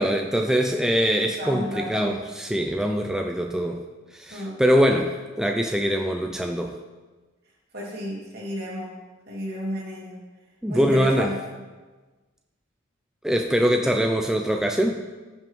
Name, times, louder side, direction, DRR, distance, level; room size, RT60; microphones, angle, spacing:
voice 1, 0.0-3.8 4.1-6.7 10.6-11.3 13.2-15.0, equal, 5° right, 3 dB, 0.4 m, -23 dB
voice 2, 1.4-2.2 4.3-4.6 7.7-9.0 9.3-10.2 10.7-11.4 13.8-13.9, equal, 55° right, -4 dB, 2.6 m, -32 dB
14.5 x 5.5 x 3.6 m, 1.3 s
head